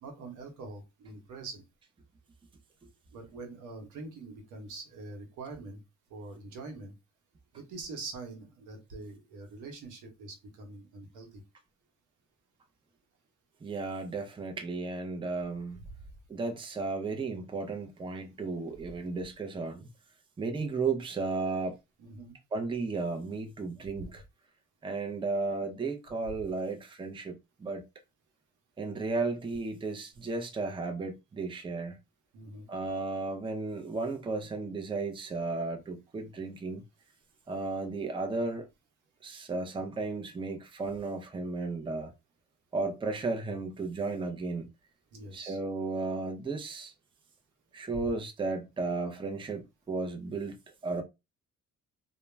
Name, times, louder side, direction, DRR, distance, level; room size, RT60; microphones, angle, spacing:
voice 1, 0.0-1.6 3.1-5.8 6.1-6.9 7.5-11.4 22.0-22.3 24.0-24.1 32.3-32.7 45.1-45.6, right 3 dB, 80° right, 0.9 m, -44 dB
voice 2, 13.6-15.8 16.3-19.9 20.4-21.8 22.5-24.2 24.8-27.8 28.8-32.0 32.7-36.8 37.5-38.7 39.2-42.1 42.7-44.7 45.3-46.9 47.7-50.6 50.8-51.0, right 3 dB, 15° right, 0.5 m, -34 dB
2.2 x 2.1 x 3.1 m
cardioid pair, 90°, 30 cm